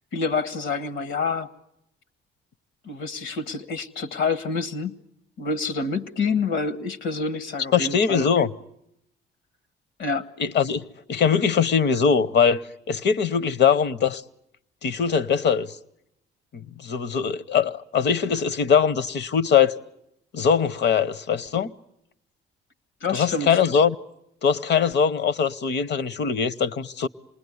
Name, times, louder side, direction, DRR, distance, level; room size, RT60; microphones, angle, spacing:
voice 1, 0.1-1.5 2.8-5.0 5.4-8.3 10.0-10.3 23.0-23.6, left 4 dB, 80° left, 1.5 m, -27 dB
voice 2, 7.7-8.5 10.4-10.8 11.1-12.6 12.9-14.2 14.8-15.7 16.5-19.8 20.3-21.7 23.1-23.9 24.4-27.1, left 7 dB, 60° left, 0.9 m, -21 dB
27.0 x 20.5 x 9.7 m
cardioid pair, 90°, 20 cm